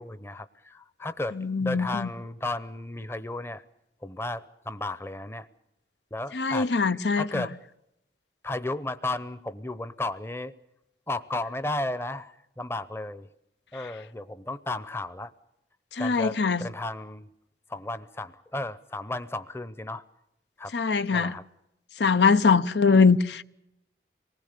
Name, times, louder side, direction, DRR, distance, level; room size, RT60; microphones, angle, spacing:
voice 1, 0.0-3.6 4.0-5.5 6.1-7.5 8.4-10.5 11.1-13.3 13.7-15.3 16.0-17.3 17.7-20.0 20.6-20.7 21.1-21.4, left 2 dB, 15° left, 0.7 m, -34 dB
voice 2, 1.4-2.1 6.3-7.5 16.0-16.7 20.7-21.3 22.0-23.4, left 5 dB, 80° left, 0.8 m, -22 dB
26.0 x 19.5 x 6.7 m
head